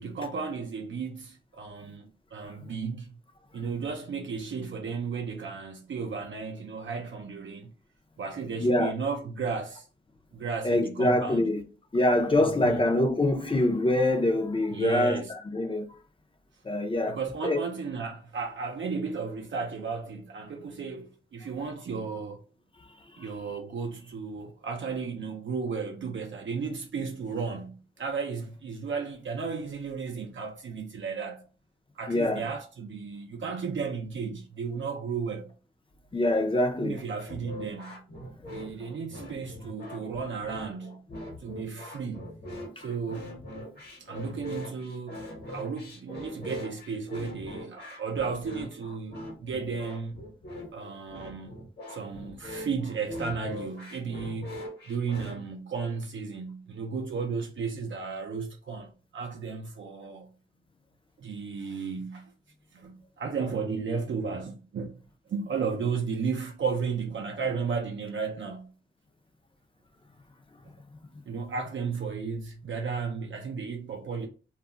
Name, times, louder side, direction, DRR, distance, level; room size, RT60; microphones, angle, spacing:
voice 1, 0.0-3.2 3.5-7.7 8.2-9.9 10.3-11.5 12.4-12.8 14.7-15.3 17.1-22.4 23.2-31.4 32.0-35.5 36.8-38.0 38.5-41.0 41.4-42.3 42.8-43.3 44.0-50.2 50.7-51.6 51.9-60.3 61.2-62.3 62.7-65.0 65.3-68.7 71.3-74.3, right 5 dB, 65° right, 0.5 m, -34 dB
voice 2, 8.6-8.9 10.6-11.6 11.9-15.9 16.6-17.6 32.1-32.4 36.1-37.0, left 1 dB, 25° left, 0.5 m, -25 dB
sound 1, 37.3-55.4, left 1 dB, 50° left, 1.0 m, -42 dB
2.3 x 2.0 x 3.6 m
wide cardioid pair, 90°, 21 cm